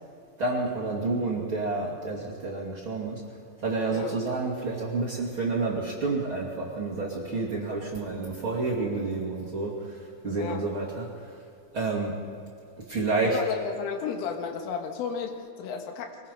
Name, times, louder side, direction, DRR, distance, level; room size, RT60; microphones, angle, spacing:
voice 1, 0.4-3.2 3.6-11.3 11.7-12.2 12.9-13.4, right 3 dB, 35° right, -5 dB, 2.5 m, -29 dB
voice 2, 13.2-16.2, left 6 dB, 90° left, 4 dB, 4.2 m, -33 dB
23.5 x 20.0 x 5.5 m, 2.5 s
omnidirectional pair, 5.6 m